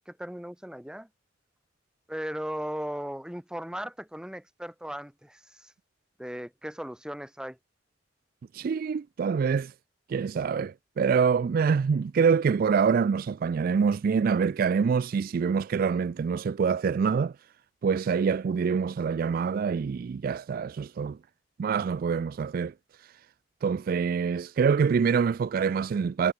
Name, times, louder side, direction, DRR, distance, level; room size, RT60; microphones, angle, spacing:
voice 1, 0.1-1.1 2.1-5.7 6.2-7.6, equal, 5° right, 1.3 m, -37 dB
voice 2, 8.5-9.7 10.1-17.3 17.8-21.2 21.6-22.7 23.6-26.3, right 6 dB, 50° right, 0.3 m, -25 dB
head